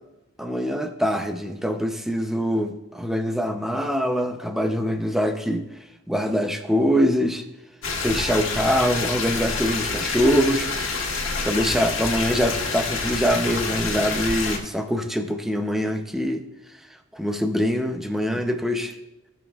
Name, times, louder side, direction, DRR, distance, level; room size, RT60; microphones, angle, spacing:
voice 1, 0.4-5.7 6.1-7.4 8.0-10.7 11.4-16.4 17.1-18.9, equal, ahead, 5 dB, 0.6 m, -24 dB
sound 1, 7.8-14.6, left 4 dB, 80° left, 1.4 m, -27 dB
17.0 x 6.1 x 2.4 m, 0.98 s
head